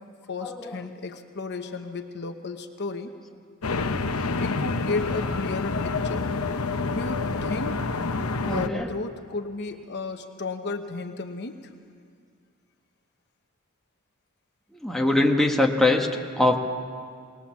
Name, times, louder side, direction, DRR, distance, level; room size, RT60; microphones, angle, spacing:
voice 1, 0.3-3.1 4.3-6.3 6.9-7.9 8.5-11.7, left 3 dB, 50° left, 6 dB, 1.0 m, -33 dB
sound 1, 3.6-8.7, left 3 dB, 80° left, 0.9 m, -28 dB
voice 2, 8.4-8.9 14.8-16.1 16.4-16.6, left 2 dB, ahead, 1 dB, 1.4 m, -21 dB
20.5 x 19.5 x 7.3 m, 2.2 s
head